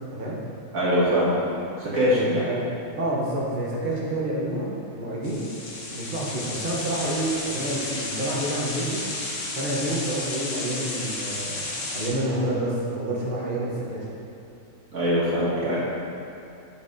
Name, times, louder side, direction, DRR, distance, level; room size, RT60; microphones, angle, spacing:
voice 1, 0.7-1.3 1.8-2.5 14.9-15.8, equal, 65° right, -9 dB, 2.3 m, -22 dB
voice 2, 2.1-2.7 3.0-5.5 5.9-9.0 9.5-14.1, right 1 dB, 40° right, -6 dB, 1.0 m, -28 dB
sound 1, 5.2-12.1, left 2 dB, 90° left, 1.5 m, -32 dB
8.7 x 6.2 x 2.6 m, 2.8 s
omnidirectional pair, 1.6 m